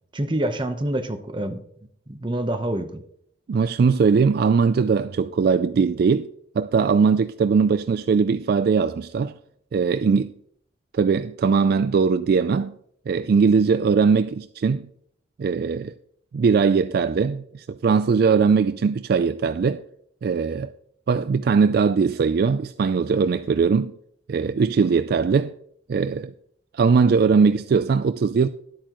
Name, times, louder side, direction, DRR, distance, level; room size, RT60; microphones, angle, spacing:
voice 1, 0.1-1.6 2.1-3.0, right 1 dB, 25° right, 0.9 m, -26 dB
voice 2, 3.5-9.3 9.7-10.3 10.9-12.7 13.1-14.9 15.4-15.9 16.3-19.8 20.2-20.7 21.1-23.9 24.3-25.5 25.9-26.3 26.7-28.5, right 5 dB, 55° right, 0.3 m, -20 dB
12.0 x 8.5 x 3.0 m
head